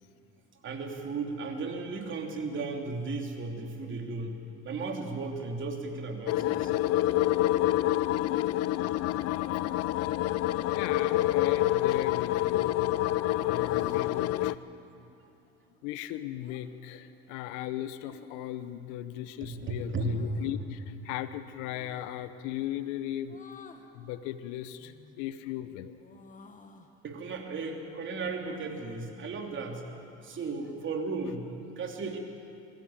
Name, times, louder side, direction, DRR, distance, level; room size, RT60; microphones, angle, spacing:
voice 1, 0.6-4.3 4.6-6.7 19.4-20.2 27.0-29.9 30.2-32.2, right 3 dB, 40° right, 2 dB, 3.1 m, -35 dB
sound 1, 6.3-14.6, left 14 dB, 55° left, 0.6 m, -27 dB
voice 2, 10.7-13.1 13.4-14.6 15.8-23.4 23.9-25.9, left 12 dB, 75° left, 12 dB, 1.0 m, -37 dB
sound 2, 11.1-11.8 12.5-12.8 13.5-14.1 16.4-16.6 18.0-18.6 19.9-20.6 21.7-22.1 23.3-23.9 24.8-25.3 25.7-26.9, left 4 dB, 25° left, 1.8 m, -53 dB
24.0 x 13.5 x 8.9 m, 2.7 s
supercardioid pair, 90°, 30 cm